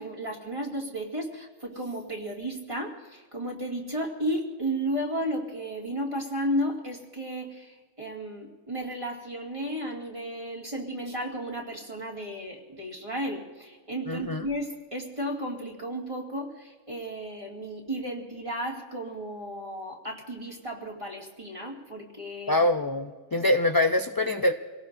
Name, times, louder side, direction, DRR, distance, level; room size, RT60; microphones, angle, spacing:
voice 1, 0.0-22.6, equal, 25° right, -2 dB, 2.6 m, -33 dB
voice 2, 14.1-14.4 22.5-24.5, left 1 dB, 30° left, 6 dB, 0.4 m, -24 dB
27.5 x 18.0 x 2.7 m, 1.5 s
omnidirectional pair, 1.2 m